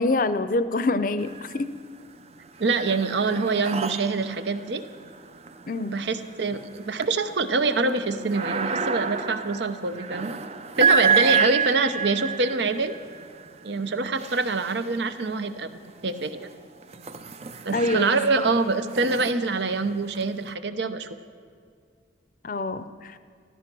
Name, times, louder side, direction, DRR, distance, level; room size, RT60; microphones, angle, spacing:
voice 1, 0.0-1.7 5.7-6.0 17.7-18.2 22.4-23.1, left 2 dB, 45° left, 13 dB, 0.6 m, -26 dB
sound 1, 1.2-1.9 2.2-15.4 16.0-20.5, right 5 dB, 35° right, 0.5 m, -30 dB
voice 2, 2.6-4.8 5.9-10.4 10.8-13.0 13.6-15.7 16.0-16.5 17.6-21.1, right 3 dB, 65° right, 10 dB, 0.8 m, -25 dB
13.5 x 13.5 x 6.1 m, 2.2 s
head